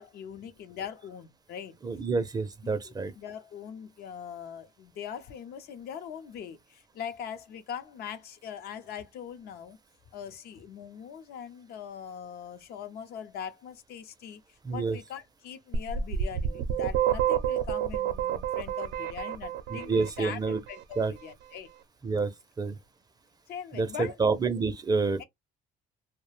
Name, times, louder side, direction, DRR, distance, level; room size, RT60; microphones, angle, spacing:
voice 1, 0.0-1.8 2.6-9.8 10.1-14.4 14.7-21.7 23.5-24.2 25.2-25.3, left 8 dB, 70° left, 0.6 m, -41 dB
voice 2, 1.8-3.1 14.6-15.0 19.7-20.6 21.0-21.1 22.0-22.3 22.6-22.8 23.7-25.2, right 4 dB, 25° right, 0.5 m, -28 dB
sound 1, 15.7-20.6, right 10 dB, 85° right, 0.5 m, -29 dB
2.4 x 2.1 x 3.1 m
cardioid pair, 110°, 17 cm